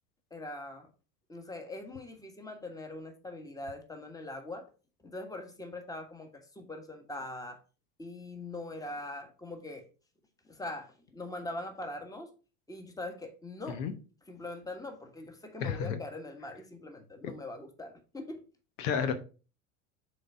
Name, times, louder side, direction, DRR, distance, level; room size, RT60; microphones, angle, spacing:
voice 1, 0.3-0.9 1.3-4.7 5.0-7.6 8.0-9.9 10.4-12.3 12.7-13.8 14.3-18.4, left 2 dB, 10° left, 1.4 m, -42 dB
voice 2, 15.6-16.0 18.8-19.2, left 7 dB, 70° left, 1.0 m, -31 dB
6.4 x 4.0 x 4.5 m
hypercardioid pair, 90°, 40 cm